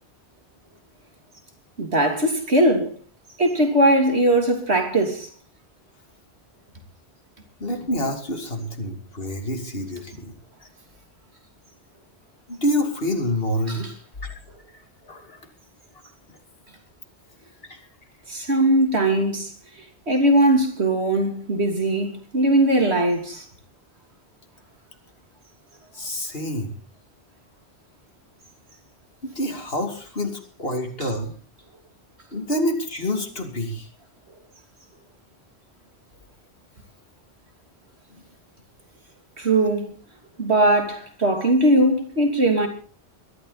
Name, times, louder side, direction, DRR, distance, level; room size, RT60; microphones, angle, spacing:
voice 1, 1.8-2.9 3.4-5.3 13.7-13.9 18.3-19.5 20.1-23.4 31.0-31.1 39.4-39.8 40.4-42.7, right 1 dB, 80° right, 3.3 m, -20 dB
voice 2, 7.6-10.3 12.5-13.9 14.2-14.3 15.1-15.2 26.0-26.7 29.2-31.3 32.3-33.9, left 1 dB, 65° left, 2.8 m, -27 dB
22.0 x 12.5 x 4.1 m
omnidirectional pair, 1.1 m